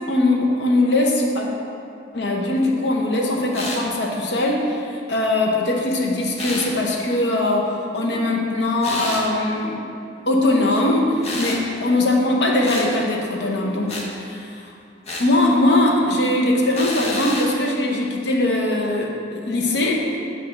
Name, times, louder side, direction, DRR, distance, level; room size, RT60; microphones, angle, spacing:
voice 1, 0.1-1.5 2.1-9.8 10.3-14.7 15.2-20.2, left 1 dB, 65° left, 0 dB, 0.8 m, -21 dB
sound 1, 3.5-3.9 6.4-6.7 8.8-9.3 11.2-11.6 12.6-12.9 13.9-14.1 15.0-15.3 16.7-17.5, left 2 dB, 35° left, 0.7 m, -29 dB
7.6 x 2.6 x 5.7 m, 2.5 s
head